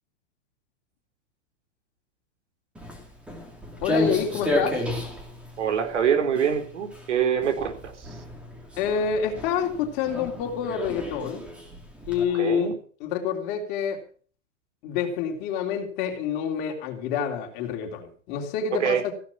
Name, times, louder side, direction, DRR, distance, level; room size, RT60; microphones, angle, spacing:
Walk footsteps, 2.7-12.2, left 1 dB, 5° right, 2.6 m, -32 dB
voice 1, 3.8-4.8 8.8-11.4 12.1-12.7 13.0-14.0 14.8-19.0, left 7 dB, 25° left, 2 dB, 3.4 m, -27 dB
voice 2, 5.6-8.1 12.3-12.7 18.8-19.0, right 8 dB, 75° right, 5 dB, 4.1 m, -25 dB
16.0 x 11.5 x 6.1 m, 0.42 s
supercardioid pair, 175°, 36 cm